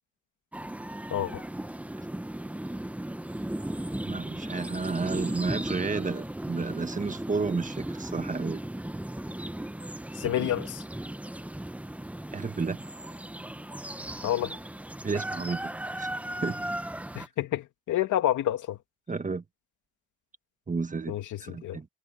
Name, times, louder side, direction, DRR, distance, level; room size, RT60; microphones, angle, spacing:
sound 1, 0.5-17.3, right 1 dB, 5° right, 0.9 m, -36 dB
voice 1, 1.1-1.4 10.1-10.8 14.2-14.6 17.1-18.8 21.1-21.8, left 12 dB, 80° left, 2.6 m, -29 dB
voice 2, 4.0-8.6 12.3-12.8 15.0-16.1 16.4-16.6 19.1-19.4 20.7-21.9, right 4 dB, 25° right, 1.5 m, -32 dB
cardioid pair, 90°, 30 cm